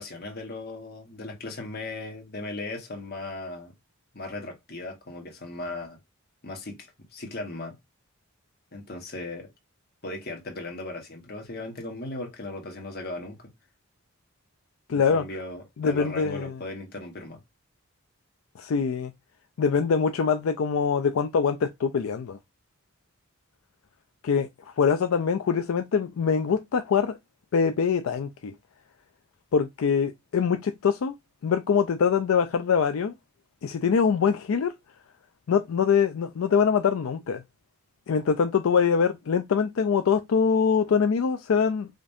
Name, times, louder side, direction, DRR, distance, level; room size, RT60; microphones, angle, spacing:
voice 1, 0.0-3.7 4.1-6.0 6.4-7.7 8.7-9.5 10.0-13.5 14.9-17.4, left 2 dB, 50° left, 1.3 m, -37 dB
voice 2, 14.9-15.2 15.8-16.6 18.6-19.1 19.6-22.4 24.2-24.5 24.8-27.2 27.5-28.5 29.5-31.1 31.4-33.1 33.6-34.7 35.5-37.4 38.1-41.9, left 6 dB, 75° left, 0.4 m, -23 dB
5.1 x 2.5 x 2.6 m
head